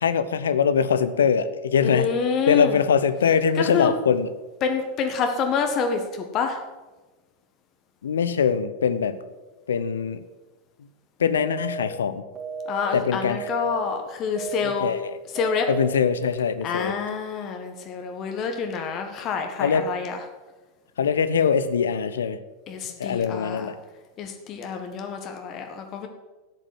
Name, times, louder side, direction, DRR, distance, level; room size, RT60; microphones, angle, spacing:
voice 1, 0.0-2.1 2.5-4.3 8.0-9.2 9.7-10.2 11.2-12.2 12.9-13.5 14.6-15.2 15.7-16.9 19.6-19.9 21.0-22.4 23.0-23.8, left 6 dB, 65° left, 13 dB, 0.9 m, -22 dB
voice 2, 1.8-2.8 3.5-3.9 4.6-6.6 12.7-14.9 15.3-15.7 16.6-20.2 22.7-23.7 24.2-26.1, left 6 dB, 35° left, 5 dB, 1.5 m, -27 dB
sound 1, 11.4-11.9 12.4-12.9 13.4-13.9 14.4-14.9 15.4-15.9, right 4 dB, 25° right, 3.4 m, -33 dB
12.0 x 9.0 x 7.9 m, 1.2 s
figure-of-eight pair, 90°, 0 cm